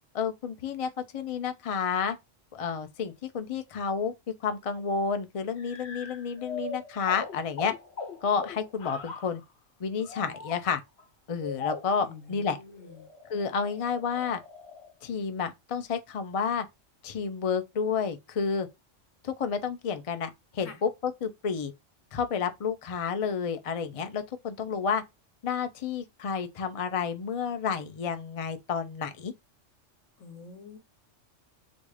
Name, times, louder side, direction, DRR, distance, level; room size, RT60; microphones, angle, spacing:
voice 1, 0.1-2.2 2.5-7.7 8.2-9.4 9.8-10.8 11.3-12.6 13.3-14.4 15.0-16.7 17.0-18.7 19.2-21.7 22.1-25.0 25.4-29.3, left 6 dB, 45° left, 0.4 m, -30 dB
sound 1, 5.6-9.4 10.0-10.7 11.0-11.1 11.4-12.1 12.7-14.9, left 4 dB, 60° left, 1.1 m, -40 dB
voice 2, 12.0-13.1 20.6-20.8 30.2-30.8, left 5 dB, 80° left, 1.4 m, -47 dB
3.9 x 2.6 x 4.7 m
omnidirectional pair, 1.3 m